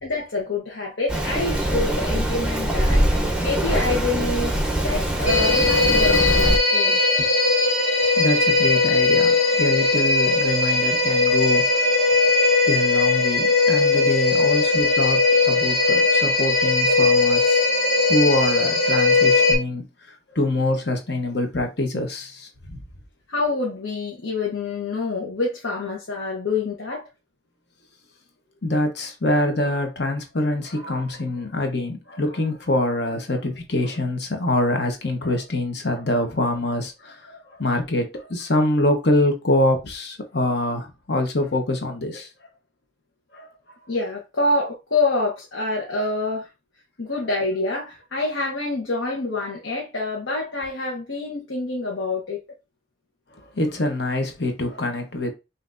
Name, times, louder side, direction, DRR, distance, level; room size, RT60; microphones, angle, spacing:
voice 1, 0.0-4.6 4.8-7.3 23.3-27.0 43.9-46.5 47.0-52.4, left 3 dB, 80° left, 1.1 m, -27 dB
Rain, 1.1-6.6, right 1 dB, 5° right, 0.7 m, -23 dB
sound 1, 5.3-19.5, left 3 dB, 35° left, 1.2 m, -19 dB
voice 2, 8.2-11.9 12.7-22.8 28.6-42.3 43.3-43.5 47.1-47.3 53.3-55.3, left 1 dB, 55° left, 1.0 m, -25 dB
5.7 x 2.7 x 2.6 m
head